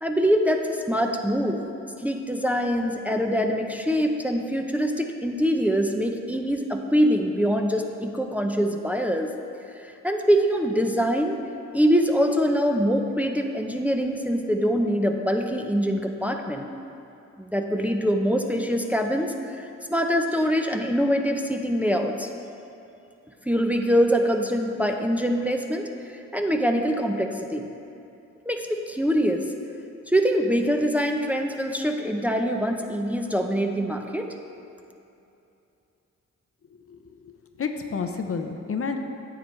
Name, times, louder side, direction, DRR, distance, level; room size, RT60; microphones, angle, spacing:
voice 1, 0.0-1.6 2.0-9.3 9.8-11.4 11.7-16.7 17.4-22.3 23.5-27.7 28.5-29.4 30.1-34.3, equal, 5° right, 3 dB, 0.6 m, -24 dB
voice 2, 36.9-39.0, left 5 dB, 50° left, 5 dB, 0.6 m, -31 dB
9.6 x 7.8 x 3.2 m, 2.8 s
cardioid pair, 60°, 29 cm